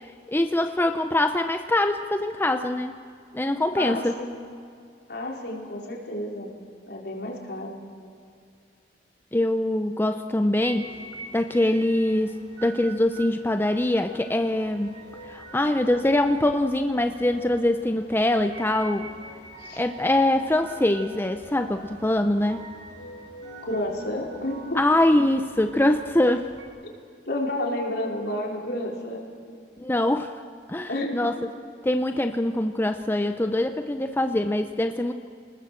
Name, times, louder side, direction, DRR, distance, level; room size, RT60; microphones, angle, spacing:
voice 1, 0.3-3.0 3.3-4.1 9.3-10.9 11.3-12.3 12.6-15.0 15.3-19.1 19.8-22.6 24.8-26.5 29.8-30.3 30.7-31.4 31.8-35.1, left 1 dB, 10° left, 7 dB, 0.7 m, -23 dB
voice 2, 3.7-4.4 5.1-6.5 6.9-7.8 19.6-19.8 23.6-24.8 26.8-26.9 27.3-29.3 30.9-31.3, left 1 dB, 65° left, -1 dB, 4.5 m, -31 dB
sound 1, 10.6-26.6, right 2 dB, 90° right, 7.3 m, -45 dB
29.0 x 20.5 x 7.6 m, 2.4 s
head